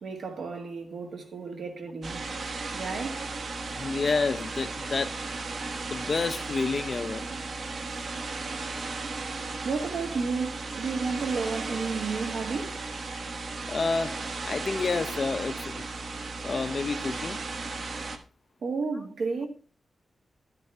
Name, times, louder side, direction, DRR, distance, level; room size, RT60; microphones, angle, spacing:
voice 1, 0.0-2.2 2.7-3.3 9.6-12.8 18.6-19.5, right 4 dB, 80° right, 1.9 m, -32 dB
sound 1, 2.0-18.2, right 3 dB, 60° right, 1.3 m, -35 dB
voice 2, 3.7-5.2 5.9-7.2 13.7-15.9 16.4-17.4, left 4 dB, 45° left, 0.6 m, -29 dB
11.5 x 8.1 x 3.5 m
wide cardioid pair, 110°, 0 cm